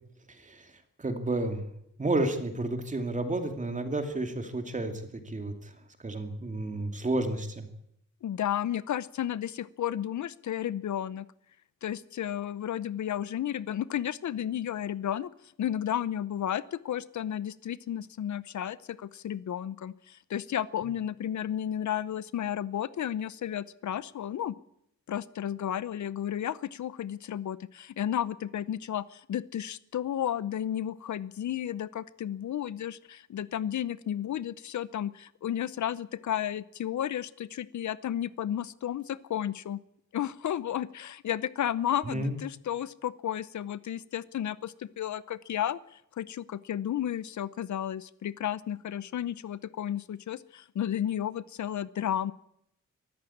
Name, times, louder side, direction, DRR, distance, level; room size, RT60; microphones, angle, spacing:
voice 1, 0.3-0.7 1.0-1.6 2.0-5.7 6.0-7.7 42.1-42.4, right 2 dB, 25° right, 6 dB, 2.6 m, -31 dB
voice 2, 8.2-11.3 11.8-15.3 15.6-24.6 25.1-39.8 40.1-52.3, left 10 dB, 70° left, 18 dB, 0.8 m, -33 dB
23.5 x 14.0 x 8.6 m, 0.77 s
wide cardioid pair, 160°, 31 cm